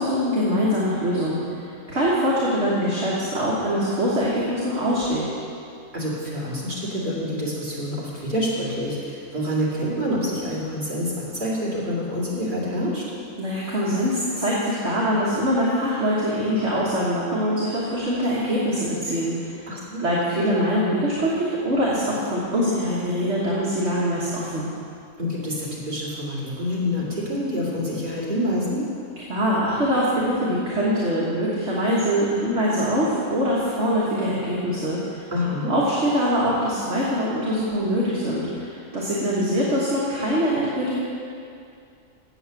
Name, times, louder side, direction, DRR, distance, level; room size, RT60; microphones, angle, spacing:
voice 1, 0.0-1.6 1.9-5.2 13.4-19.6 20.0-24.7 29.3-35.3 35.7-41.0, equal, 50° right, -7 dB, 1.7 m, -23 dB
voice 2, 5.9-13.0 19.7-20.0 25.2-28.9 35.3-35.7, left 1 dB, 35° right, -7 dB, 2.7 m, -27 dB
7.9 x 7.8 x 7.1 m, 2.5 s
omnidirectional pair, 1.5 m